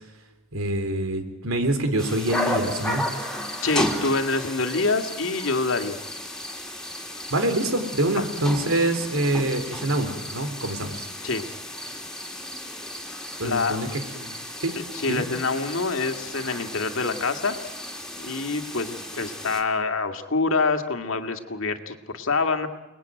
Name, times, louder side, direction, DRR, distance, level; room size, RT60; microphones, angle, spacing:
voice 1, 0.5-3.0 7.3-11.1 13.4-14.4 14.6-14.7 15.1-15.2, right 1 dB, 85° right, 7 dB, 3.7 m, -25 dB
sound 1, 2.0-19.6, left 1 dB, 5° left, 2.9 m, -34 dB
voice 2, 3.6-6.0 8.2-8.3 11.2-11.4 13.4-13.8 14.9-17.6 18.2-22.7, left 3 dB, 70° left, 7 dB, 2.1 m, -26 dB
29.5 x 20.5 x 9.2 m, 1.1 s
head